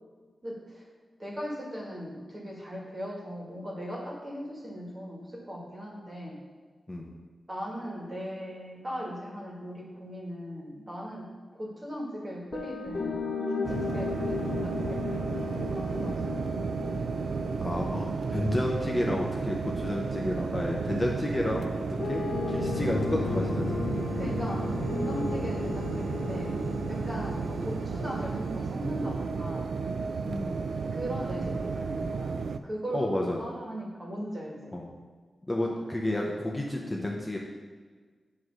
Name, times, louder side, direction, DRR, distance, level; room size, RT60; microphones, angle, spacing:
voice 1, 0.4-0.8 1.2-6.4 7.5-16.6 20.2-20.4 24.2-26.5 26.9-29.7 30.9-34.8, equal, 30° right, -2 dB, 1.7 m, -38 dB
sound 1, 12.5-20.6 22.0-28.7, left 5 dB, 55° left, 0.7 m, -36 dB
sound 2, 13.6-32.6, right 5 dB, 80° right, 0.3 m, -33 dB
voice 2, 17.6-21.7 22.0-22.2 22.5-23.8 30.2-30.7 32.9-33.4 34.7-34.9 35.5-37.4, left 1 dB, 15° left, -2 dB, 0.8 m, -30 dB
9.4 x 3.1 x 6.4 m, 1.5 s
wide cardioid pair, 130°, 0 cm